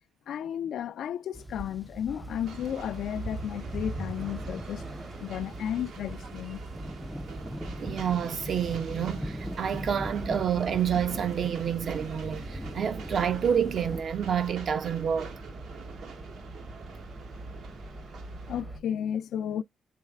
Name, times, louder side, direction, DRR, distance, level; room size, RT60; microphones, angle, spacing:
voice 1, 0.3-4.8 5.2-6.6 18.5-19.6, left 9 dB, 70° left, 0.4 m, -33 dB
sound 1, 1.3-14.0, equal, 5° right, 0.4 m, -40 dB
sound 2, 2.1-18.8, right 2 dB, 25° right, 0.8 m, -43 dB
Train, 2.5-18.6, right 6 dB, 75° right, 1.5 m, -47 dB
voice 2, 7.8-15.3, right 8 dB, 55° right, 0.8 m, -28 dB
7.4 x 3.2 x 2.3 m
cardioid pair, 90°, 0 cm